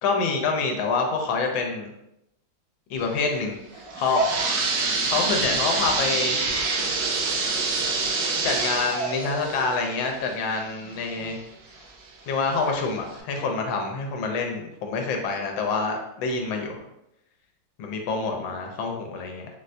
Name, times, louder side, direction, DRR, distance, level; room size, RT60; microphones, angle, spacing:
voice 1, 0.0-1.9 2.9-4.6 5.0-6.4 8.4-11.4 12.3-16.8 17.8-19.5, left 4 dB, 85° left, 2 dB, 1.3 m, -27 dB
sound 1, 3.7-11.3 11.8-11.9 12.6-12.7 13.2-13.3, right 4 dB, 75° right, 1.2 m, -26 dB
4.0 x 2.1 x 2.5 m, 0.85 s
omnidirectional pair, 2.1 m